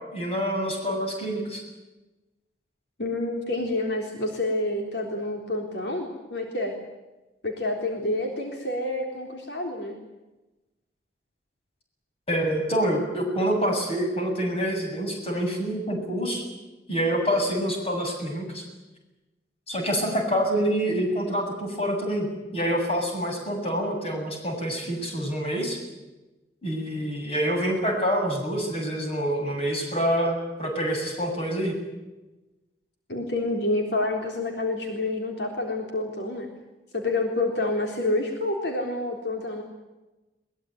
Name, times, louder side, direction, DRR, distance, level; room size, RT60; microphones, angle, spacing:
voice 1, 0.1-1.6 12.3-16.4 16.9-18.6 19.7-22.3 22.5-25.8 26.6-31.7, equal, 35° left, 2 dB, 7.8 m, -26 dB
voice 2, 3.0-6.7 7.4-10.0 33.1-36.5 36.9-39.6, left 2 dB, 75° left, 2 dB, 3.7 m, -28 dB
22.5 x 21.0 x 9.4 m, 1.1 s
head